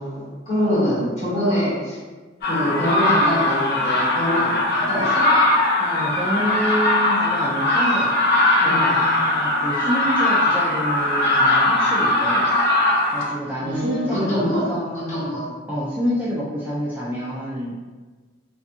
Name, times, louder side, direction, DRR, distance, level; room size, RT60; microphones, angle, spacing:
voice 1, 0.0-2.0 2.4-4.6 4.9-5.2 8.6-8.9 13.6-14.6 14.9-15.5, equal, 40° left, -12 dB, 1.5 m, -24 dB
sound 1, 2.4-13.3, left 2 dB, 55° left, 0.6 m, -20 dB
voice 2, 5.8-8.2 8.6-12.5 13.1-15.3 15.7-17.8, equal, 10° right, -8 dB, 0.3 m, -27 dB
2.7 x 2.5 x 2.3 m, 1.3 s
head